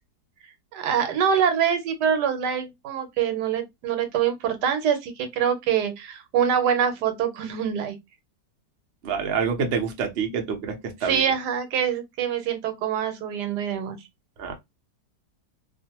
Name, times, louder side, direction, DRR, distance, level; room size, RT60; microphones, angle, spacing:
voice 1, 0.7-8.0 11.0-14.0, right 8 dB, 80° right, 1.3 m, -25 dB
voice 2, 9.0-11.2 14.4-14.5, right 6 dB, 55° right, 0.7 m, -27 dB
2.5 x 2.5 x 2.8 m
omnidirectional pair, 1.8 m